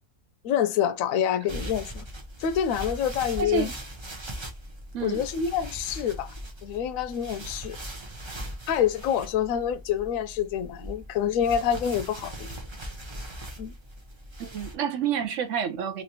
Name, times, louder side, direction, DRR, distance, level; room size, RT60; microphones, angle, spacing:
voice 1, 0.4-2.0 2.4-3.7 5.0-6.3 6.6-7.8 8.7-12.6 13.6-13.7, left 9 dB, 70° left, 0.9 m, -27 dB
sound 1, 1.5-14.7, right 1 dB, 30° right, 0.5 m, -40 dB
voice 2, 3.4-3.7 4.9-5.2 14.4-16.0, right 8 dB, 70° right, 0.8 m, -29 dB
3.1 x 2.9 x 2.7 m
omnidirectional pair, 1.6 m